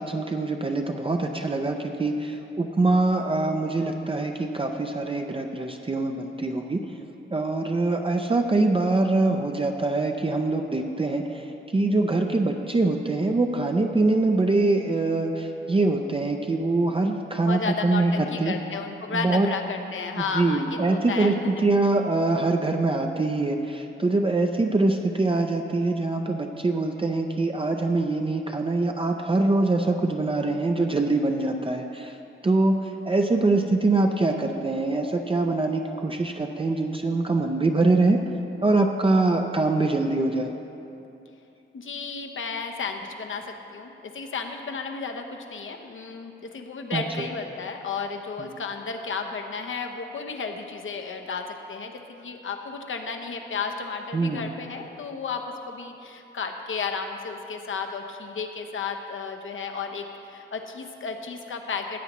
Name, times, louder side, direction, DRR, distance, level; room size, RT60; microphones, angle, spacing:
voice 1, 0.0-6.9 7.3-18.5 19.1-19.5 20.2-32.2 32.4-38.2 38.6-40.5 46.9-47.0 48.4-48.5 54.1-54.4, right 2 dB, 25° right, 3 dB, 0.5 m, -24 dB
voice 2, 17.4-21.4 41.7-62.0, left 5 dB, 70° left, 4 dB, 0.8 m, -33 dB
15.5 x 8.1 x 3.1 m, 2.8 s
wide cardioid pair, 95°, 21 cm